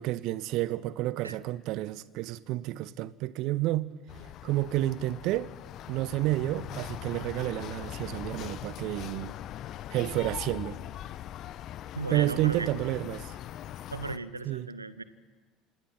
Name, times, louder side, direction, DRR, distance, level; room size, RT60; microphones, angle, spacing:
voice 1, 0.0-3.9 4.4-5.5 5.9-9.3 9.9-10.8 12.1-13.4 14.4-14.7, right 15 dB, 55° right, 0.9 m, -30 dB
sound 1, 4.1-14.2, left 12 dB, 50° left, 1.0 m, -41 dB
voice 2, 11.9-12.7 13.9-15.0, right 3 dB, 85° right, 1.0 m, -36 dB
29.0 x 26.0 x 6.0 m
figure-of-eight pair, 65°, 0 cm